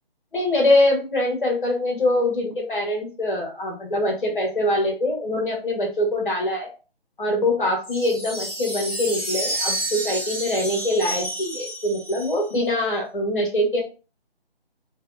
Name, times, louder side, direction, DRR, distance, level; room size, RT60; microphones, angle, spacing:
voice 1, 0.3-6.7 7.2-13.8, left 1 dB, 55° left, 1 dB, 1.1 m, -23 dB
sound 1, 7.8-12.6, right 1 dB, 15° right, 0.9 m, -30 dB
2.7 x 2.2 x 2.4 m, 0.33 s
figure-of-eight pair, 170°, 31 cm